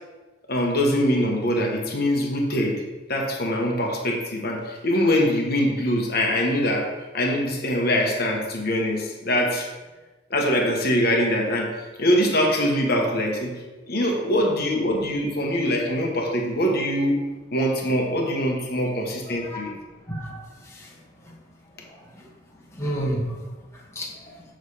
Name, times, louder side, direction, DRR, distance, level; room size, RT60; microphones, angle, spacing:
voice 1, 0.5-2.8 3.1-9.7 10.3-11.7 12.0-13.5 13.9-17.2 17.5-19.7, equal, 50° left, 0 dB, 1.2 m, -23 dB
voice 2, 20.1-20.9 22.2-22.3 22.7-23.4 23.9-24.4, right 1 dB, 15° left, -4 dB, 1.3 m, -31 dB
6.9 x 6.5 x 4.8 m, 1.2 s
head